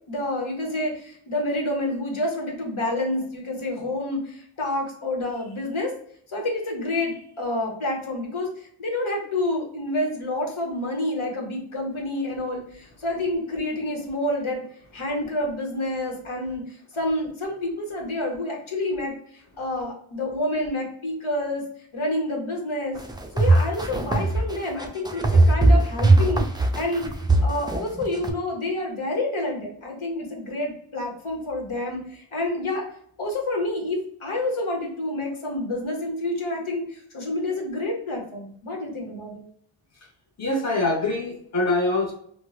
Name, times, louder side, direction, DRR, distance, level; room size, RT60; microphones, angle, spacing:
voice 1, 0.1-5.9 6.3-14.6 14.9-21.6 21.9-23.0 23.3-27.1 27.4-32.9 33.2-39.4, left 1 dB, 75° left, 0 dB, 1.0 m, -28 dB
sound 1, 23.0-28.3, right 2 dB, 10° right, 0.3 m, -19 dB
voice 2, 40.4-42.1, left 2 dB, 35° left, -2 dB, 0.7 m, -24 dB
4.4 x 2.1 x 2.3 m, 0.64 s
wide cardioid pair, 45°, 49 cm